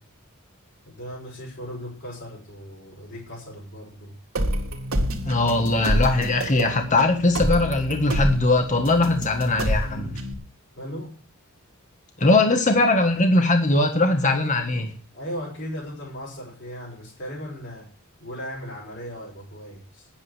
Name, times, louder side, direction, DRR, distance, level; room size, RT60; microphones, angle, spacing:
voice 1, 0.8-4.2 10.8-11.1 15.1-17.9 18.2-20.1, equal, 60° left, -6 dB, 5.6 m, -37 dB
sound 1, 4.4-10.3, equal, 70° right, 2.3 m, -27 dB
voice 2, 5.3-10.2 12.2-14.9, left 2 dB, 35° left, 5 dB, 1.6 m, -20 dB
9.8 x 8.8 x 8.1 m, 0.41 s
head